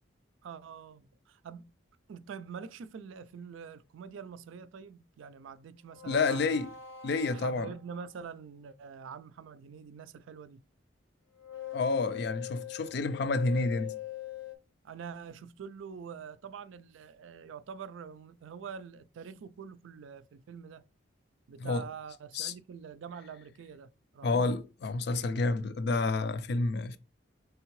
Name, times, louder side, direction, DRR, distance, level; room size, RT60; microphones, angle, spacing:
voice 1, 0.4-1.7 2.1-6.6 7.3-10.6 14.8-20.8 21.5-24.5, right 6 dB, 75° right, 0.3 m, -45 dB
sound 1, 5.9-8.1 11.4-14.5, left 11 dB, 85° left, 0.8 m, -42 dB
voice 2, 6.1-6.7 7.0-7.7 11.7-14.0 21.6-21.9 22.3-22.5 24.2-27.0, left 3 dB, 55° left, 0.4 m, -29 dB
3.6 x 3.4 x 3.0 m
head